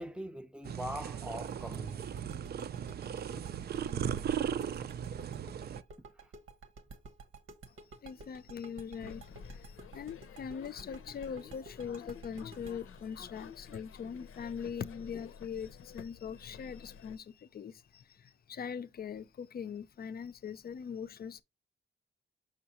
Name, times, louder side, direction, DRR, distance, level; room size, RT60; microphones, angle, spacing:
voice 1, 0.0-2.3, equal, 5° right, 0.6 m, -42 dB
sound 1, 0.6-5.8, right 8 dB, 50° right, 0.4 m, -37 dB
sound 2, 1.7-14.5, right 3 dB, 90° right, 1.1 m, -51 dB
voice 2, 8.0-21.4, left 7 dB, 50° left, 0.5 m, -42 dB
sound 3, 9.0-17.2, left 6 dB, 90° left, 0.7 m, -51 dB
6.2 x 5.6 x 2.9 m
wide cardioid pair, 130°, 21 cm